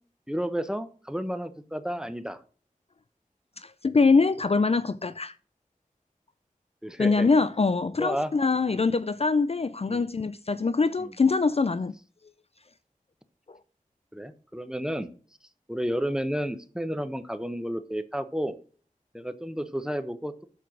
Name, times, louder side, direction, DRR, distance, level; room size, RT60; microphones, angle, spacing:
voice 1, 0.3-2.4 6.8-7.3 8.0-8.3 8.7-8.9 9.9-10.1 11.0-11.1 14.1-15.1 15.7-18.6 19.1-20.4, equal, 5° right, 0.9 m, -31 dB
voice 2, 3.6-5.3 7.0-11.9 13.5-13.6, left 4 dB, 45° left, 0.4 m, -24 dB
7.1 x 4.5 x 6.1 m
wide cardioid pair, 40°, 14 cm